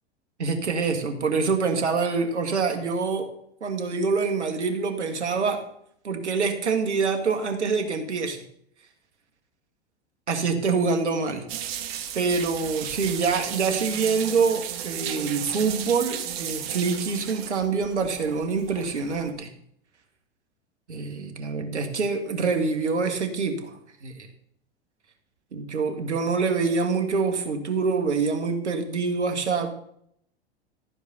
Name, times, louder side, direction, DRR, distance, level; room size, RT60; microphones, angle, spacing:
voice 1, 0.4-3.3 3.6-5.7 6.0-8.4 10.3-11.4 12.2-19.5 20.9-24.3 25.5-29.7, right 4 dB, 85° right, 6 dB, 1.8 m, -25 dB
sound 1, 11.5-19.3, right 10 dB, 60° right, 1.5 m, -34 dB
14.0 x 5.1 x 6.5 m, 0.70 s
hypercardioid pair, 95°, 34 cm